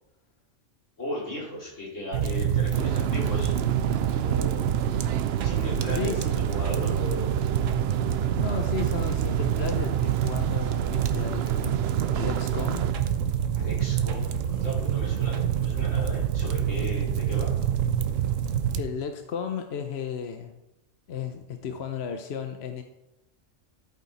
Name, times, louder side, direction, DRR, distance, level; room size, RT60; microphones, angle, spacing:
voice 1, 1.0-3.5 4.1-4.6 5.4-7.3 13.5-17.5, left 1 dB, 80° left, -6 dB, 4.9 m, -36 dB
sound 1, 2.1-18.8, right 9 dB, 85° right, 1.1 m, -27 dB
sound 2, 2.7-12.9, right 9 dB, 65° right, 0.7 m, -32 dB
voice 2, 5.9-6.3 8.3-12.8 18.8-20.6 21.1-22.8, left 6 dB, 60° left, 6 dB, 1.0 m, -34 dB
13.5 x 8.7 x 4.2 m, 0.96 s
omnidirectional pair, 1.3 m